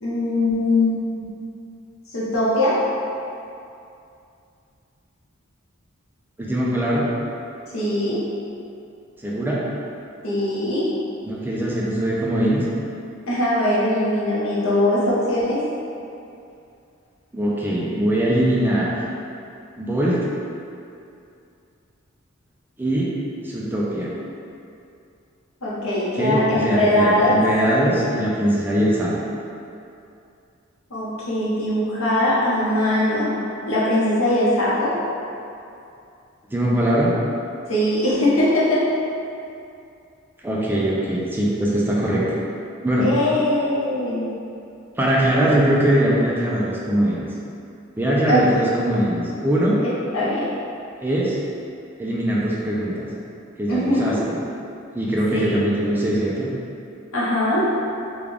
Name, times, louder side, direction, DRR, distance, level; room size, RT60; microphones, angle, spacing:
voice 1, 0.0-1.2 2.1-2.8 7.7-8.2 10.2-10.9 13.3-15.6 25.6-27.4 30.9-33.3 33.7-35.0 37.7-38.9 43.0-44.3 48.3-48.4 50.1-50.5 53.7-54.2 55.3-55.6 57.1-57.7, left 1 dB, 75° left, -8 dB, 0.9 m, -21 dB
voice 2, 6.4-7.1 9.2-9.6 11.2-12.6 17.3-18.9 19.8-20.2 22.8-23.1 23.4-24.1 26.1-29.2 36.5-37.1 40.4-42.2 42.8-43.1 45.0-47.3 48.0-49.8 51.0-51.4 52.0-53.1 53.6-54.4 54.9-56.5, right 1 dB, 10° right, -5 dB, 0.4 m, -21 dB
3.6 x 2.3 x 3.3 m, 2.6 s
head